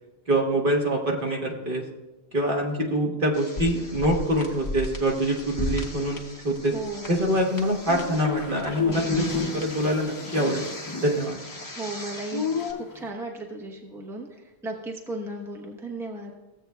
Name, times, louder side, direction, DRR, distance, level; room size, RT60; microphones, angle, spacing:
voice 1, 0.3-1.8 2.3-6.7 7.1-10.6 11.0-11.4, equal, 55° right, 0 dB, 1.4 m, -25 dB
sound 1, 3.3-12.7, left 1 dB, 20° left, 1.1 m, -36 dB
voice 2, 6.7-7.2 11.7-12.7 12.9-16.3, right 2 dB, 5° right, 0 dB, 0.9 m, -35 dB
sound 2, 7.3-13.1, left 5 dB, 35° left, 0.3 m, -33 dB
15.5 x 8.0 x 2.3 m, 1.1 s
omnidirectional pair, 1.1 m